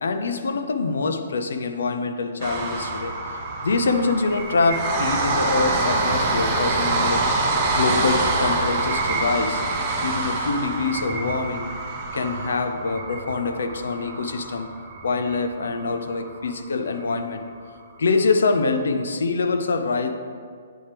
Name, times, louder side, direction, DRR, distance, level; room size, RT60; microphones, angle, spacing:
voice 1, 0.0-3.1 3.6-7.3 7.7-9.6 10.0-11.7 12.1-14.7 15.0-17.4 18.0-20.1, left 4 dB, 80° left, 7 dB, 0.6 m, -25 dB
sound 1, 2.4-16.5 16.9-17.0 17.3-17.4, right 2 dB, 25° right, 0.9 m, -26 dB
9.2 x 4.3 x 3.4 m, 2.1 s
hypercardioid pair, 160°, 0 cm